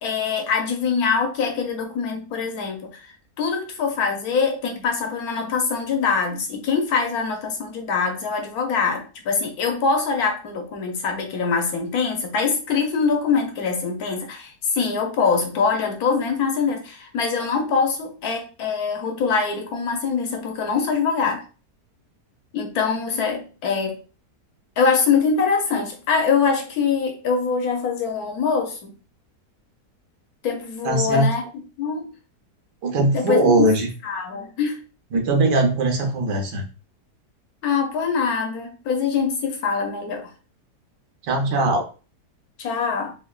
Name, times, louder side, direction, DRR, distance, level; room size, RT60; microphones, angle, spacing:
voice 1, 0.0-21.4 22.5-24.0 24.8-28.9 30.4-31.4 31.8-32.1 33.1-33.8 34.0-34.8 37.6-40.3 42.6-43.2, left 5 dB, 65° left, 4 dB, 1.2 m, -23 dB
voice 2, 30.8-31.3 32.8-33.9 35.1-36.7 41.3-41.9, right 2 dB, 85° right, 2 dB, 1.6 m, -20 dB
3.5 x 3.4 x 2.3 m, 0.34 s
omnidirectional pair, 1.8 m